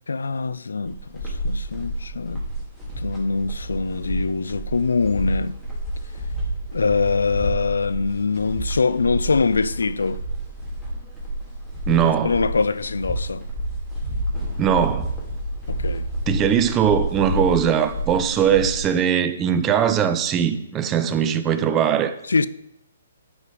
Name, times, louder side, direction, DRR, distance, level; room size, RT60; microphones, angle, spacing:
voice 1, 0.1-2.4 3.0-5.6 6.7-10.2 12.0-13.4 15.7-16.1 22.3-22.5, left 4 dB, 85° left, 0.4 m, -23 dB
sound 1, 0.9-18.9, right 1 dB, ahead, 2.9 m, -29 dB
voice 2, 11.9-12.3 14.6-15.1 16.3-22.1, right 8 dB, 20° right, 0.7 m, -20 dB
11.0 x 5.0 x 5.1 m
hypercardioid pair, 140°, 0 cm